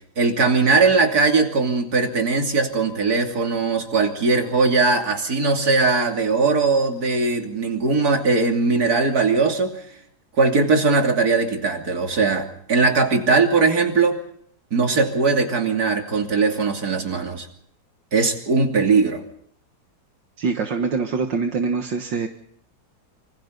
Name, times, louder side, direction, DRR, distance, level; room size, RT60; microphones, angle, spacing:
voice 1, 0.2-9.8 10.4-14.2 14.7-17.5 18.1-19.2, right 4 dB, 50° right, 3 dB, 3.3 m, -20 dB
voice 2, 20.4-22.3, right 4 dB, 70° right, 5 dB, 2.2 m, -24 dB
27.0 x 25.5 x 4.0 m, 0.64 s
omnidirectional pair, 2.0 m